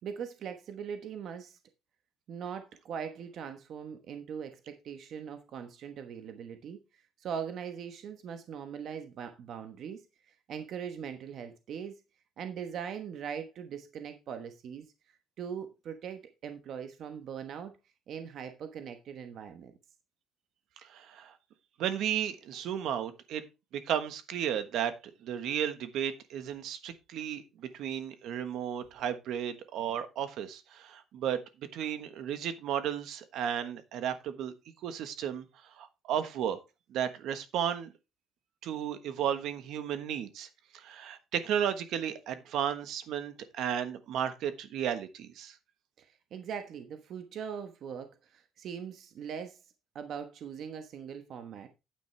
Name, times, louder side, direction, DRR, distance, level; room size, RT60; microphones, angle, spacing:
voice 1, 0.0-1.6 2.3-6.8 7.2-10.0 10.5-11.9 12.4-14.9 15.4-17.7 18.1-19.7 46.0-49.6 49.9-51.7, right 7 dB, 50° right, 1.1 m, -41 dB
voice 2, 20.8-21.3 21.8-23.4 23.7-24.9 25.2-31.4 31.7-34.5 34.8-36.6 36.9-37.9 38.6-45.6, right 9 dB, 65° right, 1.3 m, -34 dB
9.5 x 9.1 x 3.3 m
cardioid pair, 170°, 0 cm